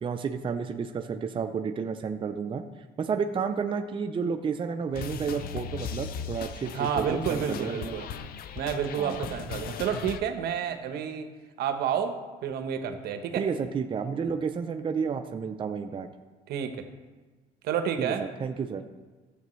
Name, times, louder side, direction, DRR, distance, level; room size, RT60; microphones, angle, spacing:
voice 1, 0.0-2.6 3.0-7.9 9.0-9.2 13.4-16.1 18.0-18.1 18.4-18.8, right 6 dB, 30° right, 6 dB, 0.5 m, -31 dB
sound 1, 4.9-10.2, left 7 dB, 60° left, 0.6 m, -37 dB
voice 2, 6.7-8.1 8.6-11.3 11.6-13.5 16.5-16.8 17.6-18.3, right 8 dB, 70° right, 7 dB, 0.9 m, -30 dB
13.5 x 7.6 x 3.1 m, 1.3 s
cardioid pair, 110°, 17 cm